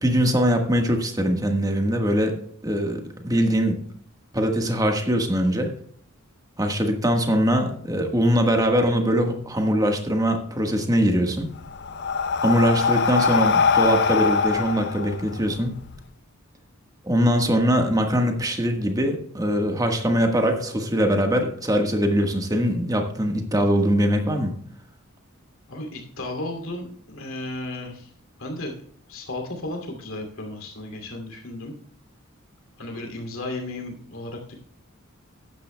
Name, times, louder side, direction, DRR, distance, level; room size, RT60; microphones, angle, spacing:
voice 1, 0.0-2.4 2.6-3.8 4.3-5.7 6.6-11.5 12.4-15.7 17.1-24.5, equal, 15° right, 4 dB, 1.4 m, -22 dB
Breathing, 11.2-16.0, left 5 dB, 55° left, 0.5 m, -22 dB
voice 2, 25.7-28.1 28.4-31.7 32.8-34.5, left 2 dB, 75° left, 3 dB, 2.7 m, -34 dB
14.0 x 10.5 x 2.2 m, 0.63 s
head